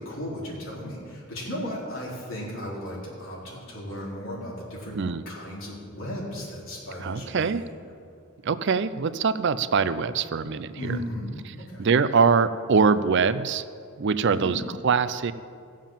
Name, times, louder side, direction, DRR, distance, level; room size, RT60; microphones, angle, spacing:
voice 1, 0.0-5.0 5.3-7.6 10.7-11.3 11.6-11.9 14.3-14.6, equal, 65° left, -5 dB, 4.1 m, -35 dB
voice 2, 7.0-7.6 8.4-11.0 11.8-13.6 14.0-15.3, right 5 dB, 55° right, 14 dB, 0.5 m, -23 dB
16.5 x 7.3 x 7.4 m, 2.3 s
head